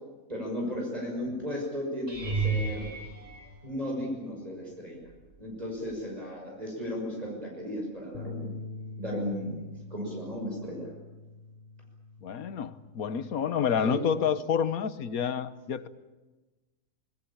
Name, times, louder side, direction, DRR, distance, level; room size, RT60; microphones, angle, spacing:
voice 1, 0.3-2.9 3.6-5.1 5.4-8.6 9.0-9.6 9.9-10.9 13.8-14.0, equal, 25° right, -2 dB, 6.1 m, -35 dB
sound 1, 2.1-4.4 5.0-5.5 5.9-6.0 10.4-10.5, right 4 dB, 55° right, 5.0 m, -33 dB
Bass guitar, 8.1-14.4, left 3 dB, 45° left, 1.4 m, -45 dB
voice 2, 12.2-15.9, left 7 dB, 80° left, 13 dB, 1.5 m, -29 dB
26.0 x 20.5 x 8.8 m, 1.2 s
omnidirectional pair, 1.5 m